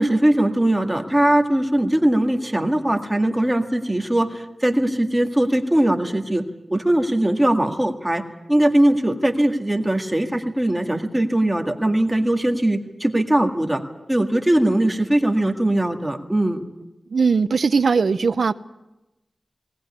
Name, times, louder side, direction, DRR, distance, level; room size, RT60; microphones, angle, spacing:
voice 1, 0.0-6.4 6.7-8.2 8.5-13.8 14.1-16.6, right 1 dB, 10° right, 4 dB, 2.0 m, -20 dB
voice 2, 17.1-18.5, right 5 dB, 70° right, 14 dB, 0.7 m, -19 dB
19.5 x 19.0 x 9.8 m, 0.99 s
wide cardioid pair, 115°, 0 cm